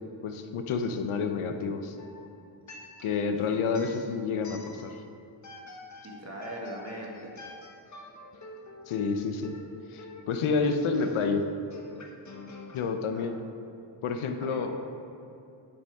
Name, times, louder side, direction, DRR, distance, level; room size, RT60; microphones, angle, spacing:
voice 1, 0.2-2.0 3.0-5.0 8.9-9.5 9.9-11.4 12.7-13.4 14.0-14.7, left 5 dB, 90° left, 6 dB, 0.8 m, -29 dB
sound 1, 2.0-3.3 3.7-5.1 5.4-12.8, left 2 dB, 35° left, 1.2 m, -47 dB
voice 2, 6.0-7.3 13.1-13.3 14.4-14.7, right 1 dB, 30° right, -2 dB, 2.0 m, -40 dB
9.3 x 6.9 x 3.6 m, 2.7 s
cardioid pair, 80°, 49 cm